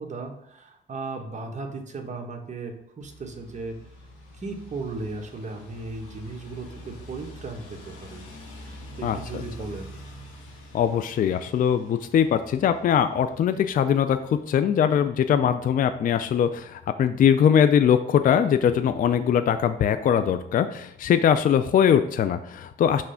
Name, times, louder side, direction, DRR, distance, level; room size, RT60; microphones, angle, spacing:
voice 1, 0.0-3.8 4.4-8.2 8.6-10.0, right 3 dB, 35° right, 2 dB, 1.3 m, -36 dB
sound 1, 3.0-14.7, left 1 dB, 90° left, 1.4 m, -45 dB
voice 2, 10.7-23.0, left 8 dB, 45° left, 11 dB, 0.4 m, -21 dB
6.0 x 3.2 x 5.7 m, 0.77 s
cardioid pair, 90°, 20 cm